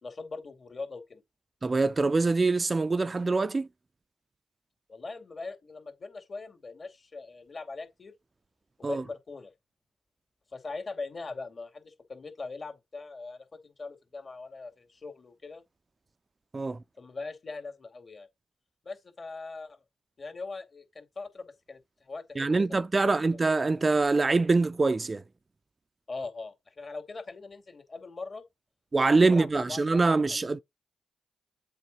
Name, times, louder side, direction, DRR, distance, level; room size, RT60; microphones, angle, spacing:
voice 1, 0.0-1.2 4.9-8.1 8.8-9.5 10.5-15.6 17.0-18.3 18.8-19.8 20.2-23.4 26.1-28.4 29.1-30.4, left 3 dB, 45° left, 2.6 m, -41 dB
voice 2, 1.6-3.7 8.8-9.0 16.5-16.8 22.4-25.2 28.9-30.6, right 3 dB, 35° right, 0.5 m, -24 dB
7.9 x 3.8 x 5.5 m
hypercardioid pair, 40°, 0 cm